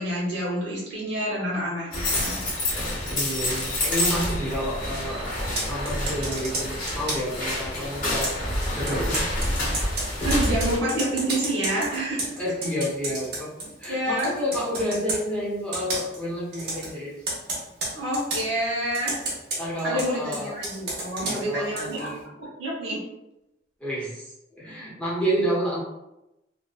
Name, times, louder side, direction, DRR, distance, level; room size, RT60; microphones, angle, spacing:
voice 1, 0.0-2.4 10.2-12.3 13.9-14.4 17.9-19.2 19.8-22.1 22.4-23.0, right 1 dB, 85° right, -5 dB, 1.1 m, -28 dB
sound 1, 1.9-10.8, left 1 dB, 45° left, 1.0 m, -28 dB
voice 2, 3.1-5.2 5.6-8.3 8.8-9.2 12.3-13.5 13.8-17.1 19.6-20.6 21.2-22.2 23.8-25.8, equal, 5° left, -8 dB, 0.8 m, -29 dB
Computer keyboard, 5.4-7.4 8.2-13.9 14.2-15.2 15.7-16.2 16.5-16.9 17.3-18.5 18.9-22.1, right 2 dB, 55° right, 0.9 m, -32 dB
2.6 x 2.2 x 2.4 m, 0.91 s
head